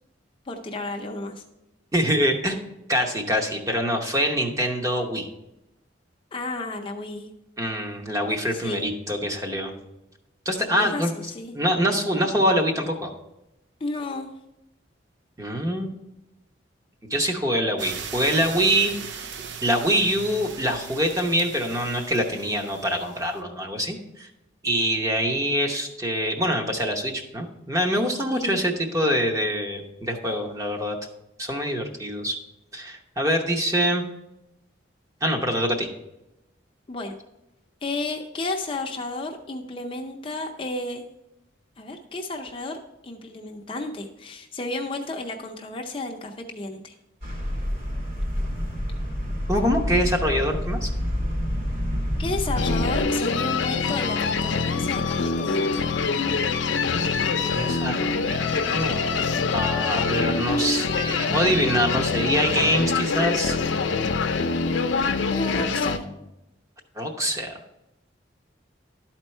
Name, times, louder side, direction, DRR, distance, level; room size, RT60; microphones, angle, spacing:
voice 1, 0.5-1.4 6.3-7.3 8.5-8.9 10.7-11.5 13.8-14.3 28.3-28.6 36.9-37.1 37.8-41.0 41.8-46.9 52.2-55.9 65.3-66.0, left 2 dB, 30° left, 2 dB, 0.6 m, -32 dB
voice 2, 1.9-2.6 2.9-5.3 7.6-9.8 10.4-11.1 11.5-13.1 15.4-15.9 17.1-19.3 19.6-24.3 24.6-31.0 31.4-32.4 32.7-34.0 35.2-35.9 49.5-50.9 57.4-59.3 59.5-63.6 67.0-67.5, equal, 15° right, 3 dB, 0.8 m, -25 dB
sound 1, 17.8-23.4, right 6 dB, 70° right, 0.5 m, -38 dB
sound 2, 47.2-53.0, equal, 55° right, 2.4 m, -28 dB
sound 3, 52.6-66.0, left 4 dB, 85° left, 0.6 m, -25 dB
11.5 x 4.4 x 4.3 m, 0.91 s
head